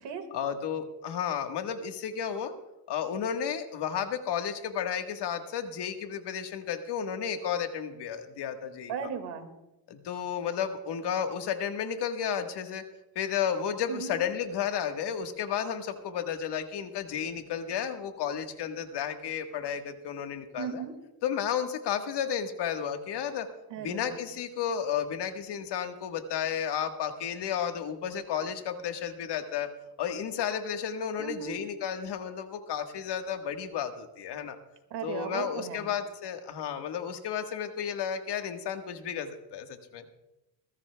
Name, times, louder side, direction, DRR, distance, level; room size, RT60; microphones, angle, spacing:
voice 1, 0.3-2.5 2.9-8.9 9.9-12.8 13.1-20.8 21.2-23.5 23.8-29.7 30.0-34.6 35.0-40.0, left 8 dB, 70° left, 6 dB, 1.5 m, -32 dB
voice 2, 8.9-9.5 13.9-14.2 20.6-20.9 23.7-24.2 31.2-31.6 34.9-35.9, right 7 dB, 80° right, 7 dB, 2.0 m, -36 dB
21.5 x 14.5 x 2.3 m, 0.97 s
cardioid pair, 90°, 42 cm